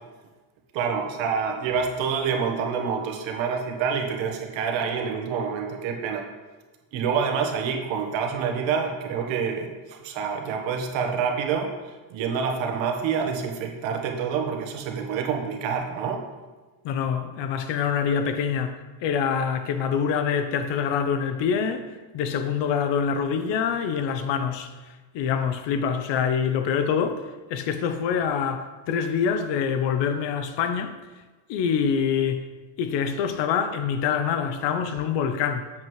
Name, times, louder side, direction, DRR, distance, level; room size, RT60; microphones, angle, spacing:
voice 1, 0.7-6.2 6.9-11.7 12.1-16.2, right 6 dB, 75° right, 1.4 m, -27 dB
voice 2, 16.8-24.7 25.1-31.0 31.5-32.5 32.8-35.7, left 7 dB, 65° left, 0.8 m, -25 dB
7.5 x 7.5 x 3.2 m
cardioid pair, 110°, 46 cm